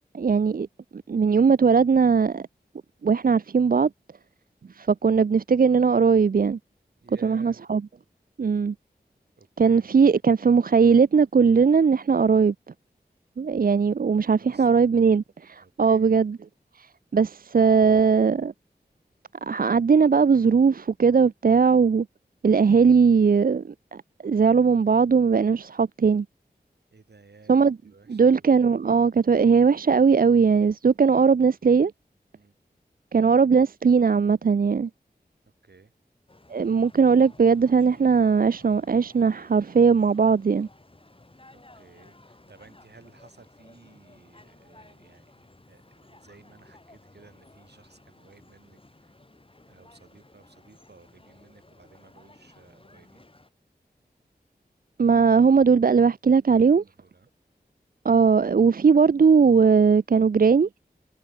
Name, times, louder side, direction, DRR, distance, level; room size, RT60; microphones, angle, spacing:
voice 1, 0.1-0.7 0.9-2.4 3.0-3.9 4.8-6.6 7.2-7.8 8.4-8.7 9.6-12.5 13.4-16.4 17.1-18.5 19.4-22.1 22.4-26.3 27.5-27.8 28.1-31.9 33.1-34.9 36.5-40.7 55.0-56.8 58.0-60.7, right 5 dB, 60° right, 0.5 m, -19 dB
voice 2, 7.0-7.6 9.4-9.9 14.4-14.9 15.6-16.2 26.9-28.5 32.3-32.6 35.6-35.9 41.5-49.1 49.7-53.3 56.7-57.3, right 4 dB, 90° right, 7.0 m, -55 dB
sound 1, 36.3-53.5, left 2 dB, 35° left, 4.9 m, -55 dB
wide cardioid pair, 65°, 17 cm